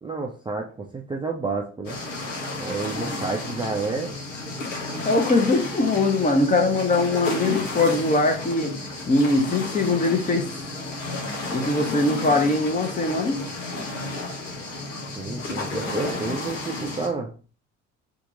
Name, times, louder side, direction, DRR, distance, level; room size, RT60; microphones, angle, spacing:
voice 1, 0.0-2.0 2.6-4.1 15.2-17.3, right 3 dB, 15° right, 1 dB, 0.5 m, -30 dB
sound 1, 1.8-17.1, left 2 dB, 85° left, 0.9 m, -32 dB
voice 2, 5.0-8.8 9.1-10.5 11.5-13.4, left 2 dB, 20° left, 4 dB, 0.8 m, -21 dB
2.8 x 2.6 x 3.8 m, 0.37 s
figure-of-eight pair, 60°, 36 cm